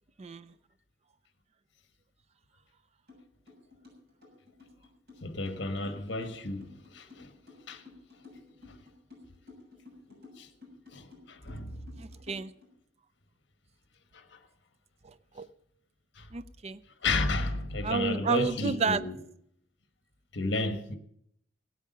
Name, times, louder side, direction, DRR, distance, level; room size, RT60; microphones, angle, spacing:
voice 1, 0.2-0.5 6.2-6.4 12.0-12.5 15.0-15.5 16.3-16.8 17.8-19.0, right 4 dB, 35° right, 0.4 m, -31 dB
sound 1, 3.1-3.2 3.5-12.7, left 3 dB, 55° right, 7.0 m, -52 dB
voice 2, 5.2-7.3 7.7-7.8 8.7-8.8 10.1-10.5 10.9-11.8 14.1-14.4 16.1-16.3 17.0-19.2 20.3-21.0, left 2 dB, 65° left, 1.4 m, -33 dB
16.5 x 8.4 x 6.7 m
head